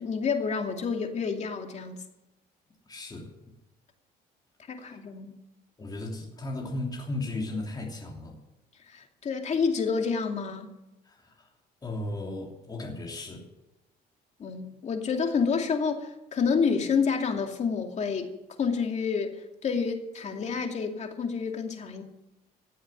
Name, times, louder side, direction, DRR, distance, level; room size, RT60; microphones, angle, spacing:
voice 1, 0.0-2.0 4.7-5.3 8.9-10.7 14.4-18.3 18.6-22.0, left 5 dB, 40° left, 4 dB, 2.5 m, -29 dB
voice 2, 2.9-3.3 4.7-5.0 5.8-8.4 11.0-11.5 11.8-13.4, left 2 dB, 25° left, -1 dB, 3.1 m, -36 dB
15.5 x 7.7 x 9.8 m, 0.94 s
cardioid pair, 110°, 17 cm